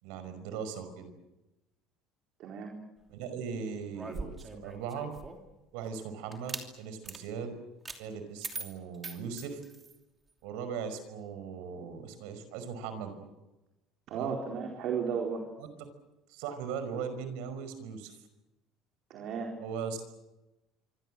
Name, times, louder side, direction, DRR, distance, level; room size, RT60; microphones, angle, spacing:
voice 1, 0.0-1.1 3.1-5.1 5.7-7.5 8.0-9.6 10.4-13.3 14.1-14.4 15.6-15.7 16.3-18.2 19.6-20.0, right 6 dB, 90° right, 10 dB, 5.5 m, -39 dB
voice 2, 2.4-2.8 14.1-15.4 19.1-19.5, right 6 dB, 50° right, 1 dB, 4.4 m, -34 dB
sound 1, 3.9-5.5 6.3-6.7 7.0-7.2 7.8-8.0 8.4-10.0, right 4 dB, 15° right, 2.9 m, -41 dB
26.0 x 25.5 x 7.8 m, 1.0 s
cardioid pair, 155°, 0 cm